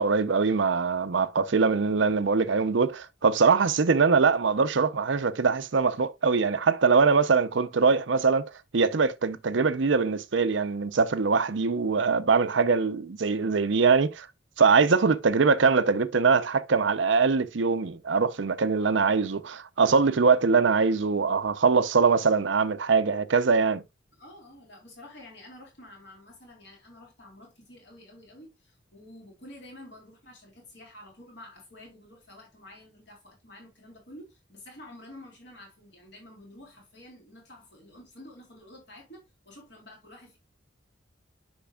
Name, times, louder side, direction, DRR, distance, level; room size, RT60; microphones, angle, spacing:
voice 1, 0.0-8.5 8.7-14.3 14.6-23.8, right 5 dB, 70° right, 0.6 m, -23 dB
voice 2, 24.1-40.4, left 1 dB, 60° left, 3.6 m, -49 dB
10.5 x 5.2 x 2.3 m
head